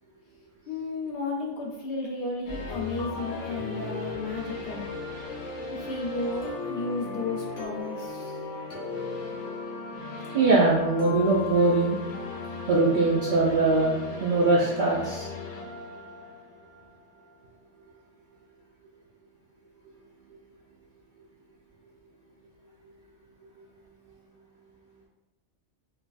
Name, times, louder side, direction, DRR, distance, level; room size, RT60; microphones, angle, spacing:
voice 1, 0.7-4.9 5.7-8.4, left 3 dB, 60° left, -2 dB, 0.8 m, -33 dB
sound 1, 2.5-17.3, left 3 dB, 85° left, 1.1 m, -37 dB
voice 2, 10.3-12.0 12.7-13.9 14.2-15.3, right 3 dB, 60° right, -4 dB, 0.5 m, -22 dB
4.5 x 2.1 x 2.5 m, 1.0 s
omnidirectional pair, 1.3 m